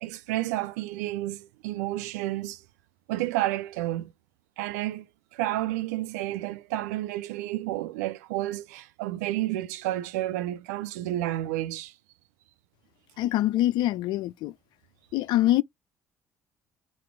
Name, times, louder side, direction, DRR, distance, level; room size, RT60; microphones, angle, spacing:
voice 1, 0.0-2.6 3.1-4.1 4.6-5.1 5.3-11.9, right 15 dB, 70° right, 0.5 m, -31 dB
voice 2, 13.2-14.5 15.1-15.6, left 14 dB, 55° left, 0.3 m, -24 dB
4.1 x 2.4 x 4.7 m
figure-of-eight pair, 45°, 9 cm